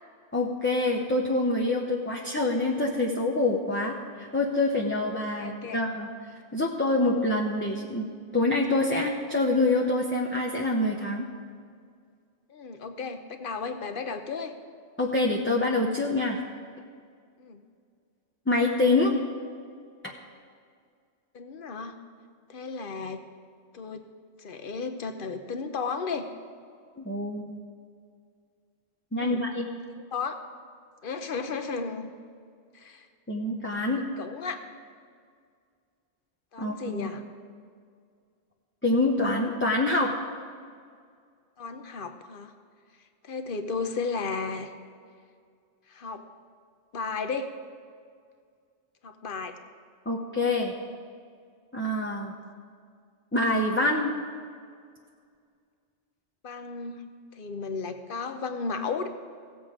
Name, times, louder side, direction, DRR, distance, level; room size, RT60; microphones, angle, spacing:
voice 1, 0.3-6.1 6.5-8.1 8.3-11.3 15.0-16.4 18.5-19.1 27.0-27.5 29.1-29.7 33.3-34.0 36.6-37.1 38.8-40.1 50.1-50.7 51.7-52.3 53.3-54.1, left 2 dB, 10° left, -3 dB, 0.7 m, -26 dB
voice 2, 5.4-5.8 12.5-14.6 17.4-17.6 21.3-22.0 22.5-23.2 23.7-24.1 24.4-26.3 29.2-29.4 29.9-30.4 31.0-32.1 32.7-33.1 34.0-34.6 36.5-37.2 41.6-42.5 43.2-44.7 45.9-46.3 46.9-47.5 49.0-49.6 56.4-57.0 57.3-59.1, left 4 dB, 50° left, 7 dB, 0.9 m, -34 dB
16.5 x 7.9 x 5.0 m, 2.2 s
omnidirectional pair, 1.3 m